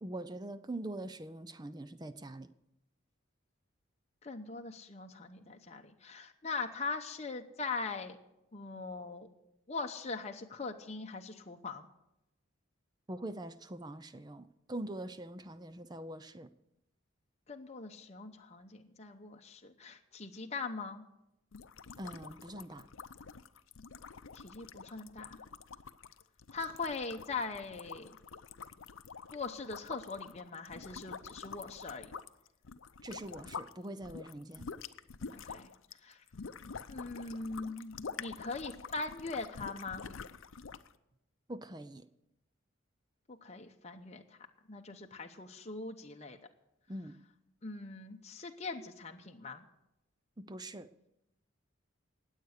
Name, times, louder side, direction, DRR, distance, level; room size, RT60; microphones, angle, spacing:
voice 1, 0.0-2.5 13.1-16.5 22.0-22.8 33.0-34.7 41.5-42.1 46.9-47.2 50.4-50.9, right 1 dB, 20° right, 0.5 m, -43 dB
voice 2, 4.2-8.2 8.5-9.3 9.7-11.9 17.5-21.0 24.3-25.4 26.5-28.2 29.3-32.1 35.3-35.7 36.0-36.2 36.9-40.0 43.3-44.2 44.7-46.4 47.6-49.6, left 4 dB, 30° left, 0.8 m, -41 dB
sound 1, 21.5-33.7 34.0-40.9, left 5 dB, 75° left, 0.6 m, -47 dB
19.5 x 8.2 x 6.6 m
head